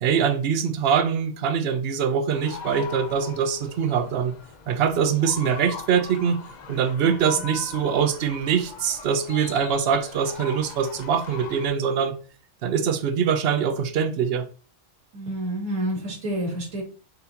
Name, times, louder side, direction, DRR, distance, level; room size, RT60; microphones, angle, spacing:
voice 1, 0.0-4.3 4.7-6.4 6.7-12.2 12.6-14.4, right 7 dB, 60° right, 0.7 m, -23 dB
sound 1, 2.3-11.7, left 6 dB, 80° left, 0.4 m, -40 dB
voice 2, 7.0-7.4 15.1-16.8, right 1 dB, 90° right, 1.9 m, -29 dB
4.0 x 3.9 x 2.8 m
omnidirectional pair, 1.4 m